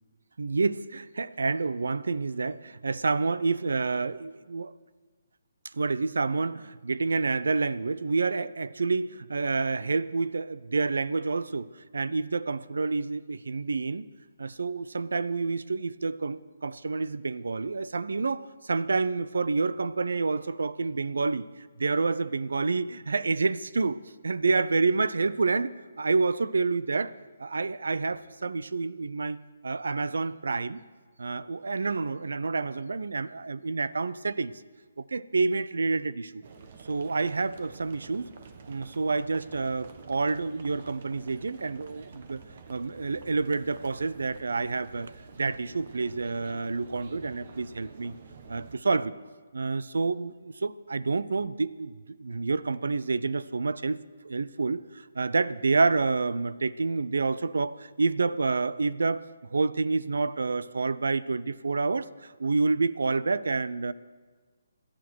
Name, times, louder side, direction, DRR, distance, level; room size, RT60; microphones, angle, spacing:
voice 1, 0.4-4.7 5.7-11.7 11.9-14.1 14.4-21.5 21.8-29.4 29.6-30.8 31.2-34.5 35.0-36.4 36.8-38.3 38.7-42.4 42.7-48.1 48.5-49.1 49.5-54.0 54.2-54.8 55.2-63.9, right 4 dB, 70° right, 19 dB, 0.6 m, -28 dB
sound 1, 36.4-48.8, right 5 dB, 50° right, 1.4 m, -49 dB
27.0 x 11.5 x 4.7 m, 1.4 s
figure-of-eight pair, 140°, 0 cm